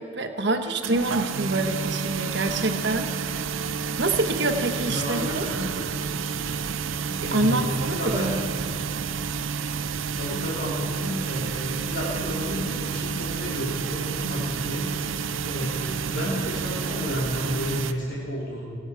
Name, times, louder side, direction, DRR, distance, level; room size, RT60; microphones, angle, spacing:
voice 1, 0.0-3.5 4.0-5.5 7.2-8.3, right 2 dB, 60° right, 5 dB, 1.1 m, -26 dB
sound 1, 0.8-17.9, right 6 dB, 85° right, 0.6 m, -30 dB
voice 2, 4.8-5.9 7.0-8.4 10.1-15.0 15.4-18.6, equal, 65° left, -6 dB, 2.9 m, -31 dB
25.5 x 8.7 x 4.7 m, 2.5 s
head